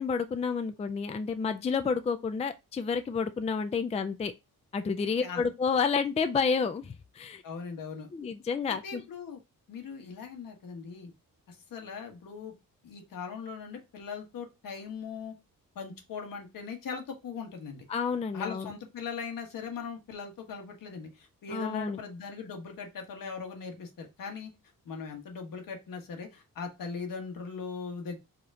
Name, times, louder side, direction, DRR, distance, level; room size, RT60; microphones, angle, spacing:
voice 1, 0.0-4.3 4.7-7.4 8.1-9.0 17.9-18.7 21.5-22.0, left 5 dB, 20° left, 0.4 m, -30 dB
voice 2, 5.0-5.4 7.4-8.1 8.7-9.4 9.7-11.1 11.5-12.5 12.8-15.3 15.7-17.8 18.3-24.5 24.8-28.2, left 5 dB, 75° left, 1.4 m, -40 dB
5.0 x 2.9 x 3.6 m
cardioid pair, 115°, 34 cm